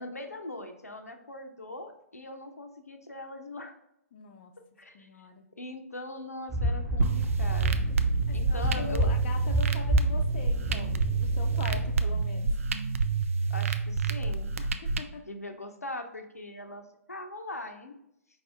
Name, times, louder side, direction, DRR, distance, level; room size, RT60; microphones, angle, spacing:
voice 1, 0.0-3.7 4.6-5.3 5.6-7.9 8.3-9.1 13.5-14.5 15.1-18.0, left 1 dB, 80° left, 5 dB, 0.6 m, -41 dB
voice 2, 4.1-4.5 4.9-5.5 8.3-12.6 14.6-15.3, left 5 dB, 40° left, 3 dB, 0.5 m, -42 dB
sound 1, 6.5-11.9, equal, ahead, 1.1 m, -29 dB
sound 2, 7.0-15.0, right 4 dB, 60° right, 0.4 m, -28 dB
4.7 x 2.6 x 3.4 m, 0.79 s
figure-of-eight pair, 120°, 8 cm